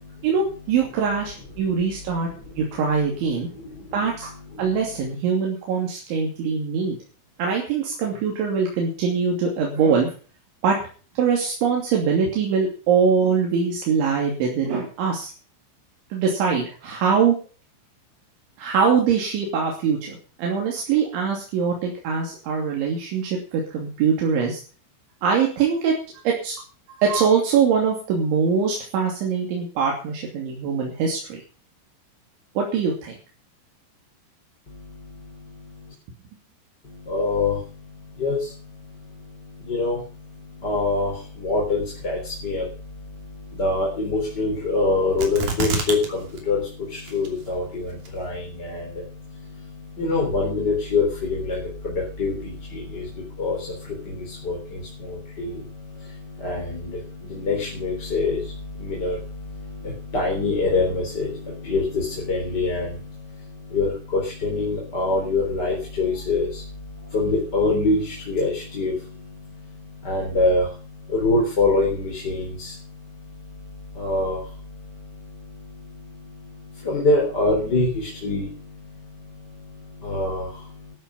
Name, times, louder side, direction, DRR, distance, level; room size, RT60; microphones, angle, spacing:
voice 1, 0.2-2.3 2.6-3.5 3.9-4.3 4.6-7.0 7.4-10.1 10.6-10.8 11.2-15.3 16.1-17.4 18.6-24.6 25.2-26.0 26.2-26.5 27.0-31.4 32.6-33.1, right 6 dB, 75° right, -1 dB, 5.1 m, -23 dB
voice 2, 3.4-3.9 4.5-4.7 34.7-35.9 36.8-80.9, left 3 dB, 25° left, -1 dB, 3.7 m, -26 dB
sound 1, 45.2-46.1 46.4-46.5 47.1-47.5 48.1-48.2, right 4 dB, 45° right, 3.8 m, -26 dB
13.0 x 13.0 x 5.3 m, 0.38 s
omnidirectional pair, 5.6 m